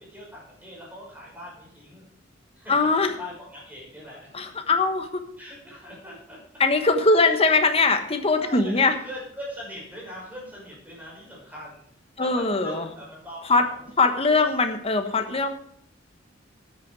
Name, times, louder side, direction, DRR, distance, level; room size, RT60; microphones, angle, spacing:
voice 1, 0.0-2.1 2.6-2.7 3.1-4.4 5.4-6.4 7.1-7.3 8.4-11.8 12.2-13.8 15.3-15.5, left 1 dB, 10° right, -4 dB, 5.9 m, -41 dB
voice 2, 2.7-3.2 4.3-5.2 6.6-8.9 12.2-12.9 13.4-13.7 14.0-15.5, left 3 dB, 30° left, 7 dB, 1.3 m, -21 dB
13.0 x 9.0 x 4.8 m, 0.70 s
head